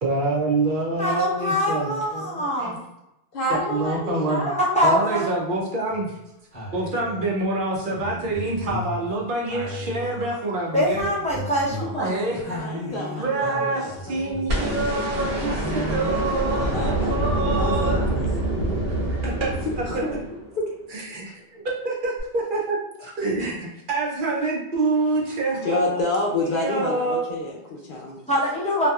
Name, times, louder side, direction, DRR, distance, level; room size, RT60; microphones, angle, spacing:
voice 1, 0.0-2.8 3.5-4.5 4.8-6.2 6.7-11.1 12.0-12.6 13.2-18.0 19.2-19.5 19.9-20.0 20.9-26.0 26.5-27.4, right 2 dB, 60° right, -2 dB, 0.7 m, -26 dB
voice 2, 1.0-2.8 4.6-5.3 10.7-12.1 28.3-28.9, equal, 10° left, -7 dB, 0.4 m, -23 dB
voice 3, 3.3-4.8 11.7-15.2 16.7-18.3 19.9-20.1 20.5-20.7 25.6-28.2, left 2 dB, 60° left, -3 dB, 0.8 m, -29 dB
sound 1, 5.9-6.1 6.5-7.4 7.9-10.6 10.9-16.5 16.9-17.4, equal, 40° right, 0.9 m, -36 dB
sound 2, 14.5-20.7 22.2-22.3, right 1 dB, 90° right, 1.2 m, -26 dB
2.7 x 2.3 x 2.2 m, 0.87 s
omnidirectional pair, 1.0 m